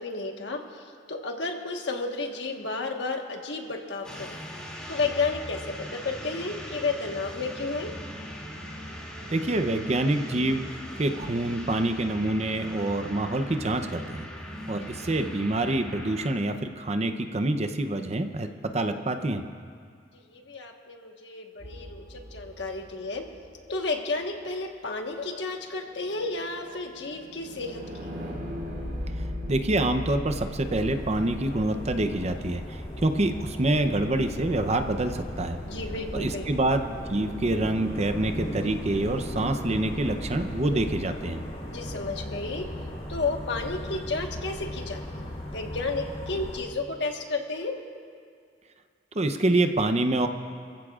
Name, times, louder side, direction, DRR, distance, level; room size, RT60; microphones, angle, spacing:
voice 1, 0.0-4.3 4.9-7.9 14.9-15.1 20.3-23.3 23.7-28.1 35.7-36.5 41.7-42.7 43.1-45.2 45.5-47.8, left 3 dB, 65° left, 2 dB, 1.4 m, -32 dB
sound 1, 4.0-16.4, equal, 5° left, 2.6 m, -39 dB
voice 2, 9.3-14.3 14.7-19.4 29.5-35.6 36.1-41.4 49.1-50.3, right 2 dB, 35° right, 8 dB, 0.7 m, -26 dB
sound 2, 21.6-23.8 25.6-33.6, left 1 dB, 70° right, 4.2 m, -39 dB
sound 3, 30.6-46.6, equal, 40° left, 3.3 m, -37 dB
28.5 x 15.0 x 2.4 m, 2.2 s
head